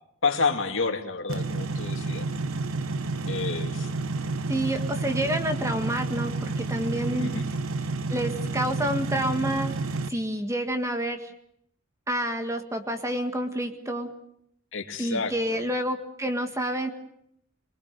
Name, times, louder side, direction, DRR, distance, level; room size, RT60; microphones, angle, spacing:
voice 1, 0.2-2.3 3.3-3.9 7.1-7.5 14.7-15.6, left 4 dB, 65° left, 2 dB, 2.7 m, -29 dB
sound 1, 1.3-10.1, right 3 dB, 75° right, 1.0 m, -30 dB
voice 2, 4.5-7.3 8.1-9.8 10.1-11.3 12.1-14.1 15.0-16.9, right 1 dB, 15° right, 6 dB, 1.8 m, -28 dB
23.0 x 21.0 x 6.8 m, 0.76 s
head